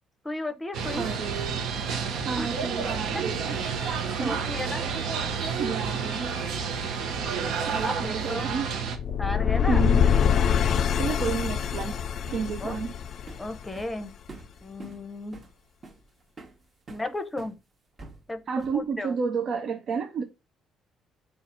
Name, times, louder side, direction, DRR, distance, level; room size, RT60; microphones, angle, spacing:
voice 1, 0.2-1.1 2.4-2.5 4.2-4.9 7.8-8.5 9.2-9.9 12.6-12.7 13.4-14.1 14.6-15.4 16.9-17.6 18.3-19.1, left 1 dB, 15° left, 0.7 m, -34 dB
sound 1, 0.7-9.0, right 6 dB, 80° right, 0.9 m, -30 dB
voice 2, 1.0-1.7 2.2-3.7 4.2-4.4 5.6-6.3 7.7-8.7 9.7-10.1 11.0-12.0 12.3-12.9 18.5-20.2, right 6 dB, 60° right, 0.5 m, -31 dB
sound 2, 2.0-8.2 8.5-8.7 10.6-10.9 11.2-17.6 18.0-18.9, right 3 dB, 35° right, 1.0 m, -48 dB
sound 3, 8.9-14.0, left 8 dB, 55° left, 0.3 m, -24 dB
4.0 x 2.4 x 4.2 m
cardioid pair, 100°, 0 cm